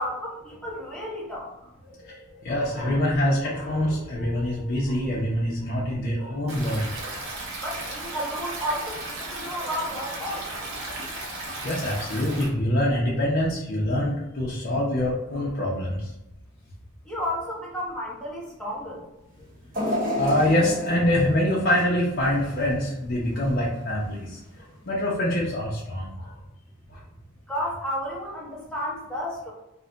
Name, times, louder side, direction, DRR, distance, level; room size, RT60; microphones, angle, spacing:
voice 1, 0.0-1.5 7.6-10.5 17.0-19.0 27.5-29.5, equal, 5° left, -6 dB, 0.7 m, -32 dB
voice 2, 1.9-7.2 9.6-9.7 11.6-16.1 18.8-18.9 20.2-24.4 24.9-26.3 26.9-27.0, left 1 dB, 50° left, -6 dB, 0.5 m, -25 dB
Stream, 6.5-12.5, right 2 dB, 85° right, 0.7 m, -35 dB
sound 1, 19.7-22.9 23.3-23.5 24.5-24.6, equal, 45° right, 0.8 m, -31 dB
2.3 x 2.1 x 3.7 m, 0.94 s
head